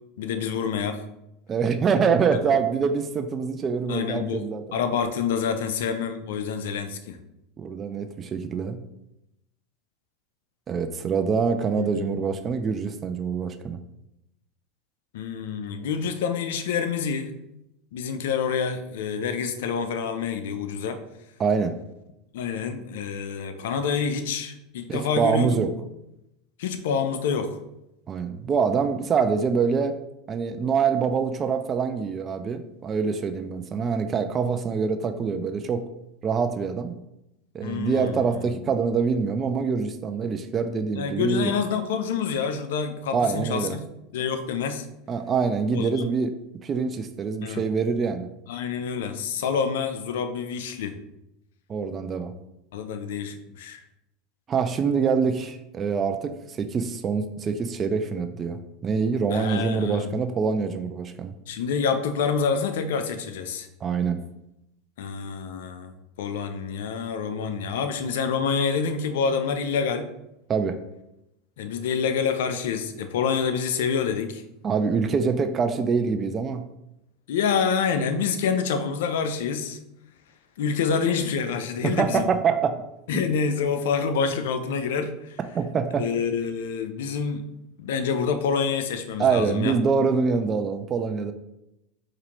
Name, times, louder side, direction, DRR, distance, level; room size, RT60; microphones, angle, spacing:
voice 1, 0.2-1.0 3.9-4.5 4.7-7.2 11.7-12.2 15.1-17.4 17.9-21.0 22.3-25.7 26.6-27.6 37.6-38.2 40.9-43.9 44.1-44.9 45.7-46.0 47.4-47.6 48.5-51.0 52.7-53.8 59.3-60.2 61.5-63.7 65.0-70.1 71.6-74.4 77.3-79.8 80.6-82.3 83.1-85.4 86.0-87.4 87.8-89.7, left 6 dB, 75° left, 9 dB, 0.4 m, -27 dB
voice 2, 1.5-4.8 7.6-8.8 10.7-13.8 21.4-21.8 24.9-25.7 28.1-30.0 30.3-35.8 36.2-37.0 37.5-41.5 43.1-43.8 45.1-46.3 46.6-48.3 51.7-52.3 54.5-61.3 63.8-64.2 70.5-70.8 74.6-76.7 81.8-82.8 85.5-86.1 89.2-91.3, right 5 dB, 30° right, 8 dB, 0.3 m, -25 dB
4.2 x 2.5 x 2.9 m, 0.87 s
hypercardioid pair, 95°, 0 cm